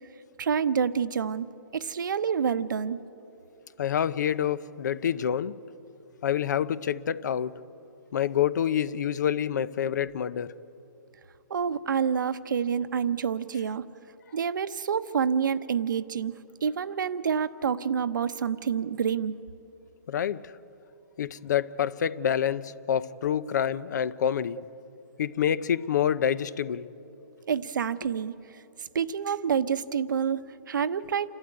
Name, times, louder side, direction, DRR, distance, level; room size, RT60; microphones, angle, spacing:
voice 1, 0.4-1.5 1.7-3.0 11.5-13.8 14.3-16.3 16.6-19.3 27.5-28.3 28.9-31.3, right 7 dB, 80° right, 12 dB, 0.9 m, -27 dB
voice 2, 3.8-5.6 6.2-7.6 8.1-10.5 20.1-20.5 21.2-24.6 25.2-26.9, left 9 dB, 65° left, 18 dB, 0.7 m, -27 dB
28.5 x 12.5 x 9.6 m, 3.0 s
hypercardioid pair, 160°, 10 cm